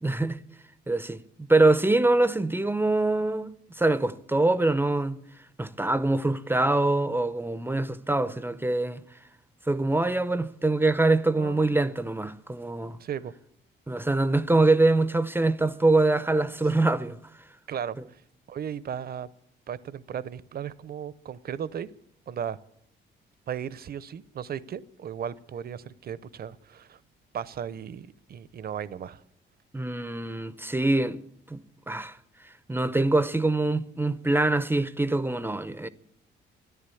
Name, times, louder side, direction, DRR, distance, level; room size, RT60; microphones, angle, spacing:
voice 1, 0.0-0.4 0.9-5.2 5.6-9.0 9.7-13.0 13.9-17.2 29.7-31.2 31.5-32.2 32.7-35.9, right 2 dB, 10° right, 0.6 m, -24 dB
voice 2, 11.4-11.7 13.0-13.3 17.7-18.2 18.5-19.3 19.7-21.9 22.3-22.6 23.5-27.0 27.3-29.2, right 8 dB, 50° right, 0.7 m, -36 dB
13.5 x 10.5 x 8.4 m
cardioid pair, 90°, 20 cm